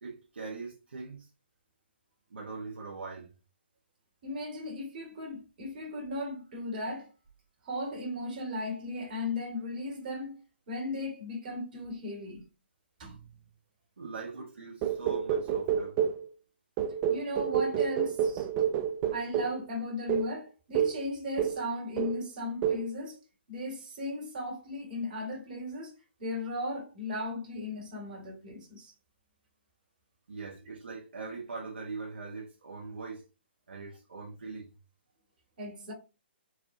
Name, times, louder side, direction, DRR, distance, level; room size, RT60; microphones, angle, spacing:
voice 1, 0.0-1.3 2.3-3.3 14.0-16.0 30.3-33.2 33.7-34.7, right 4 dB, 75° right, 1.0 m, -41 dB
voice 2, 4.2-7.1 7.6-10.4 10.7-12.5 13.0-13.2 14.3-14.4 17.1-18.5 19.1-23.2 23.5-25.9 26.2-28.9 35.6-35.9, left 1 dB, 50° right, 1.8 m, -36 dB
sound 1, 14.8-16.2 16.8-19.6 20.1-20.3 20.7-21.0 21.4-21.7 22.0-22.3 22.6-22.9, right 9 dB, 30° right, 0.4 m, -29 dB
4.6 x 2.5 x 2.7 m
hypercardioid pair, 140°, 6 cm